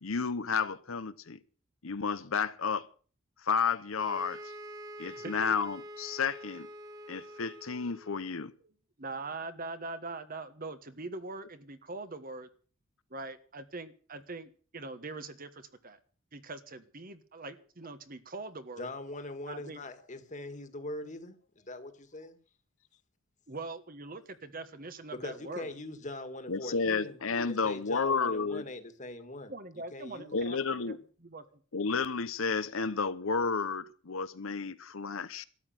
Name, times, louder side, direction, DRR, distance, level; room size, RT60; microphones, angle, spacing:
voice 1, 0.0-1.4 1.8-2.9 3.4-4.5 5.0-6.7 7.1-8.5 26.5-28.7 30.3-31.0 31.7-35.4, left 5 dB, 75° left, 0.9 m, -31 dB
sound 1, 4.0-8.4, equal, 20° right, 2.1 m, -46 dB
voice 2, 9.0-12.5 13.1-16.0 16.3-18.9 19.5-19.8 23.5-25.7 29.5-31.0 31.2-31.6, right 3 dB, 45° right, 1.4 m, -42 dB
voice 3, 18.8-22.4 25.2-27.2 27.4-30.5 31.4-31.5, left 2 dB, 35° left, 1.9 m, -42 dB
13.0 x 8.4 x 9.3 m
head